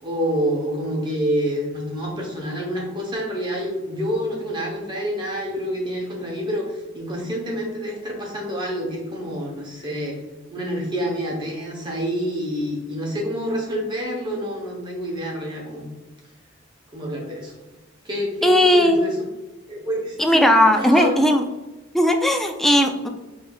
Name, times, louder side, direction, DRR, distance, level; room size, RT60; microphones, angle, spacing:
voice 1, 0.0-10.2 10.5-15.9 16.9-17.5 18.0-19.2 19.7-21.2, equal, 25° right, -2 dB, 0.8 m, -27 dB
voice 2, 18.4-19.1 20.2-21.4 21.9-23.1, equal, ahead, 4 dB, 0.3 m, -17 dB
5.4 x 3.2 x 2.3 m, 1.1 s
head